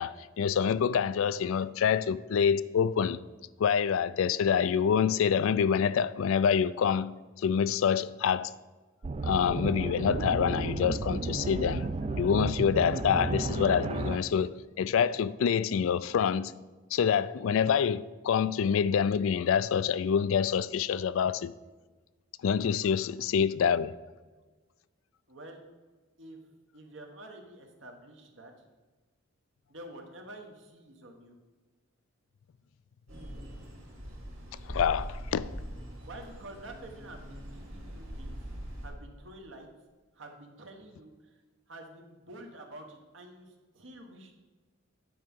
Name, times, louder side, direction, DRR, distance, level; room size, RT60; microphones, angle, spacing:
voice 1, 0.0-3.2 3.6-7.1 7.4-8.5 9.2-11.9 12.2-16.5 16.9-21.5 22.4-23.9 34.7-35.5, left 7 dB, 80° left, 0.3 m, -26 dB
sound 1, 9.0-14.2, right 3 dB, 30° right, 0.3 m, -33 dB
voice 2, 25.3-25.6 26.2-28.7 29.7-31.4 36.0-38.3 38.8-39.7 40.1-41.4 41.7-44.3, right 1 dB, 65° right, 1.3 m, -48 dB
sound 2, 33.1-38.9, equal, 85° right, 2.6 m, -42 dB
9.4 x 4.7 x 5.4 m
head